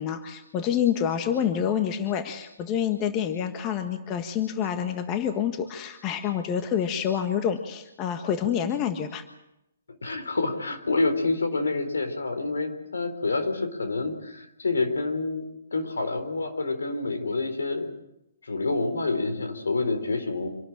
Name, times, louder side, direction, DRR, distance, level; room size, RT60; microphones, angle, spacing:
voice 1, 0.0-9.2, left 8 dB, 25° left, 7 dB, 1.6 m, -27 dB
voice 2, 10.0-17.9 18.4-20.5, left 3 dB, 75° left, 6 dB, 4.2 m, -28 dB
26.5 x 12.5 x 8.8 m, 0.86 s
figure-of-eight pair, 135°, 0 cm